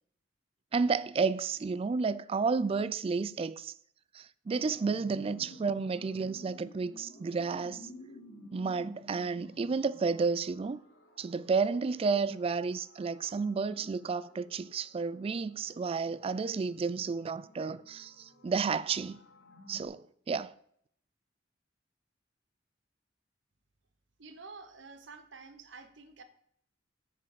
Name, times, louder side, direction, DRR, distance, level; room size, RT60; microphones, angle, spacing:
voice 1, 0.7-3.7 4.1-7.9 8.5-10.8 11.2-19.2 19.7-20.5, right 4 dB, 30° right, 0.3 m, -31 dB
sound 1, 4.5-19.9, left 1 dB, 90° left, 2.6 m, -54 dB
voice 2, 24.2-26.2, right 4 dB, 75° right, 1.0 m, -49 dB
7.2 x 6.9 x 4.9 m
head